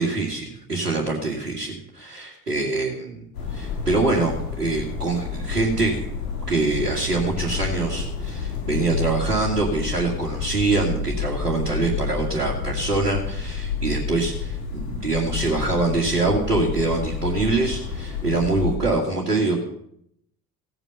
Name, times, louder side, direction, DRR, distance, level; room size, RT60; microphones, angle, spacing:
voice 1, 0.0-3.2 3.5-6.0 6.5-19.5, right 3 dB, 80° right, -3 dB, 2.3 m, -24 dB
sound 1, 3.3-18.8, left 5 dB, 70° left, 5.3 m, -29 dB
16.5 x 9.0 x 6.9 m, 0.73 s
figure-of-eight pair, 60°, 46 cm